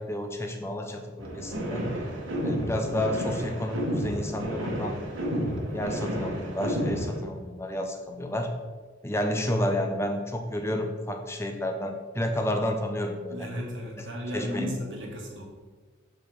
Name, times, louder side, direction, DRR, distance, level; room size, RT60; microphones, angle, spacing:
voice 1, 0.0-1.9 2.4-5.0 5.7-8.5 9.0-13.5 14.0-14.1 14.3-14.8, left 1 dB, 15° left, 4 dB, 0.6 m, -30 dB
sound 1, 1.2-7.2, equal, 90° right, 1.4 m, -31 dB
voice 2, 13.3-15.4, equal, 70° right, -1 dB, 1.5 m, -35 dB
6.8 x 3.7 x 4.6 m, 1.4 s
head